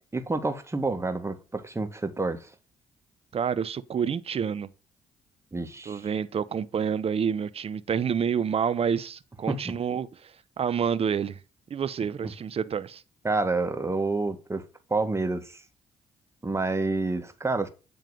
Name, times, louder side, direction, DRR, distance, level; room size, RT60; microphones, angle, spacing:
voice 1, 0.1-2.5 5.5-6.1 9.5-9.8 12.2-12.3 13.2-14.7 14.9-15.6 16.4-17.7, right 3 dB, 20° right, 1.8 m, -28 dB
voice 2, 3.3-4.7 5.9-11.4 11.7-13.0, right 7 dB, 45° right, 0.8 m, -28 dB
9.4 x 3.6 x 6.5 m
supercardioid pair, 60°, 14 cm